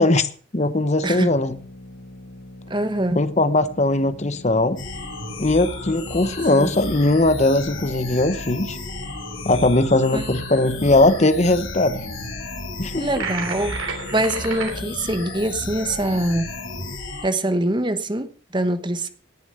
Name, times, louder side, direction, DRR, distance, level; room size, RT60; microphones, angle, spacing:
voice 1, 0.0-1.6 3.2-4.8 5.4-8.8 9.4-12.1 12.8-13.1, left 2 dB, 35° left, 0.8 m, -19 dB
sound 1, 1.0-17.0, left 1 dB, 65° left, 2.1 m, -42 dB
voice 2, 2.7-3.2 6.5-6.7 10.1-10.3 13.0-13.8 14.1-16.5 17.2-19.1, right 1 dB, 20° right, 1.0 m, -24 dB
sound 2, 4.8-17.3, left 2 dB, 85° left, 4.7 m, -33 dB
sound 3, 13.2-14.7, right 5 dB, 85° right, 3.4 m, -30 dB
18.5 x 7.1 x 6.7 m
head